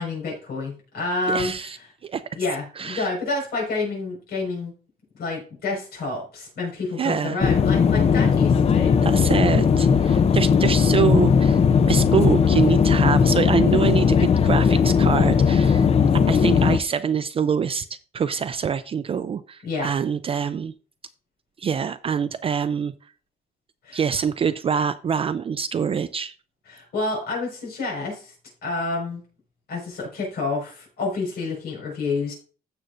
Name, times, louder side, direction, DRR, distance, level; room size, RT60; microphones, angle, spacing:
voice 1, 0.0-1.7 2.3-4.7 5.1-9.4 19.6-19.9 23.8-24.0 26.7-28.3 28.6-29.2 29.7-32.3, left 3 dB, 90° left, -2 dB, 5.2 m, -29 dB
voice 2, 1.3-1.8 2.0-2.2 2.8-3.1 7.0-7.4 9.0-11.6 11.9-15.9 16.3-17.9 18.1-20.7 21.6-22.9 23.9-26.3, right 7 dB, 35° right, 11 dB, 0.4 m, -25 dB
sound 1, 7.4-16.8, left 6 dB, 40° left, 0.6 m, -18 dB
15.5 x 6.7 x 2.6 m, 0.39 s
cardioid pair, 135°, 16 cm